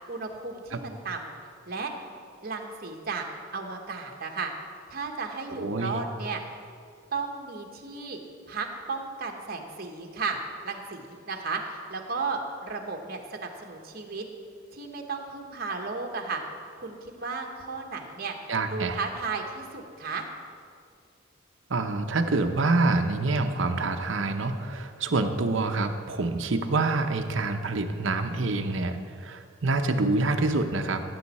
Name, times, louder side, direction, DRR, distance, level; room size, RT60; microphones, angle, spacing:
voice 1, 0.1-1.3 1.7-1.9 2.4-3.2 3.5-4.5 4.9-6.4 7.1-8.2 8.5-10.4 10.6-14.2 14.7-16.4 16.7-18.3 18.7-20.2, right 4 dB, 50° right, 2 dB, 1.2 m, -34 dB
voice 2, 5.5-6.0 18.5-19.0 21.7-31.0, right 3 dB, 65° right, 6 dB, 0.7 m, -26 dB
15.5 x 7.9 x 4.2 m, 2.3 s
head